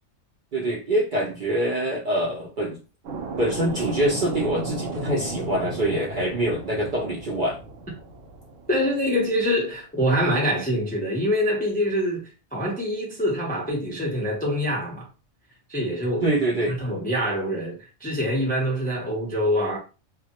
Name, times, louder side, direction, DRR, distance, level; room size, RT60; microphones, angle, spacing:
voice 1, 0.5-2.8 3.4-7.6 16.2-16.8, right 1 dB, 55° right, 0.6 m, -25 dB
sound 1, 3.0-9.4, right 2 dB, 90° right, 0.9 m, -34 dB
voice 2, 8.7-15.1 15.7-16.3 16.7-19.8, equal, 15° left, 0.3 m, -25 dB
2.2 x 2.0 x 2.8 m
omnidirectional pair, 1.3 m